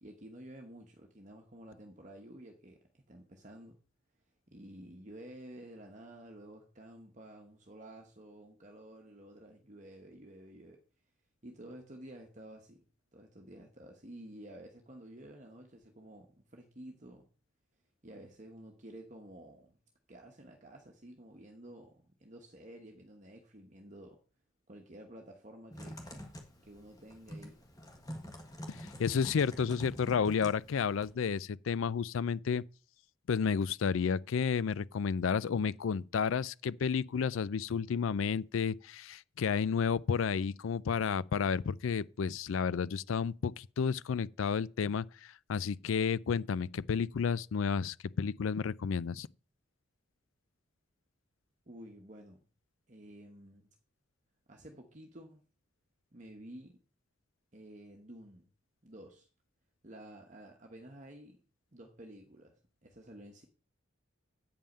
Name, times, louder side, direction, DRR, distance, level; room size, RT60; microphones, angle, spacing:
voice 1, 0.0-3.8 4.5-10.8 11.4-12.8 13.1-17.3 18.0-19.8 20.1-24.2 24.7-26.2 26.6-27.6 51.7-52.4 52.9-53.7 54.5-55.4 56.1-56.8 57.5-58.5 58.8-59.3 59.8-61.4 61.7-62.6 62.8-63.4, right 1 dB, 35° right, 1.1 m, -51 dB
Typing, 25.7-31.1, equal, 15° left, 1.6 m, -47 dB
voice 2, 28.7-32.6 33.3-49.3, left 6 dB, 75° left, 0.4 m, -31 dB
8.7 x 5.5 x 6.5 m
head